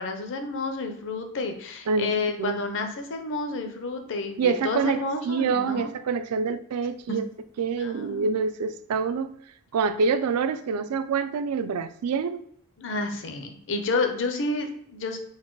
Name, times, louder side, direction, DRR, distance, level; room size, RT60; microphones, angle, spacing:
voice 1, 0.0-5.9 7.1-7.2 7.8-8.3 12.8-15.2, left 3 dB, 55° left, 5 dB, 0.6 m, -30 dB
voice 2, 4.4-7.2 7.6-9.3 9.7-12.4, right 5 dB, 80° right, 12 dB, 0.4 m, -26 dB
4.0 x 2.2 x 4.6 m, 0.65 s
head